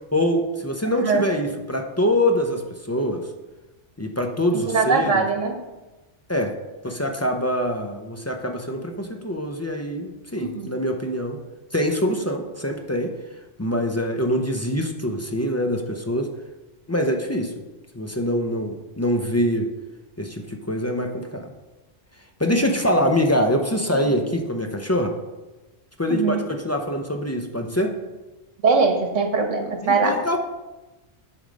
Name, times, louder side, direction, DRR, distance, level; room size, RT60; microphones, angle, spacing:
voice 1, 0.1-3.3 4.0-5.3 6.3-6.6 6.8-11.4 11.7-13.2 13.6-16.3 16.9-17.5 17.9-19.7 20.2-21.5 22.4-25.2 26.0-28.0 29.8-30.4, equal, 20° left, 3 dB, 0.4 m, -24 dB
voice 2, 0.8-1.2 4.6-5.5 10.4-10.7 26.1-26.4 28.6-30.2, right 4 dB, 80° right, 4 dB, 1.5 m, -21 dB
8.2 x 5.2 x 5.2 m, 1.1 s
omnidirectional pair, 1.3 m